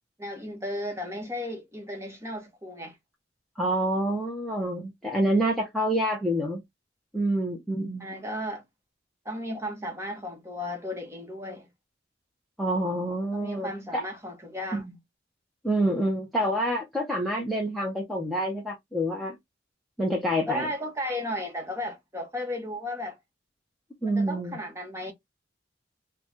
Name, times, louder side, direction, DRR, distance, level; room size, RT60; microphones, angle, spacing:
voice 1, 0.2-3.0 8.0-8.6 9.2-11.7 13.3-14.9 20.5-23.2 24.0-25.1, left 1 dB, 15° right, 1.0 m, -34 dB
voice 2, 3.6-6.6 7.1-8.2 12.6-14.0 14.7-14.9 15.6-19.4 20.0-20.7 24.0-24.6, right 1 dB, ahead, 0.7 m, -27 dB
3.8 x 2.3 x 3.0 m
head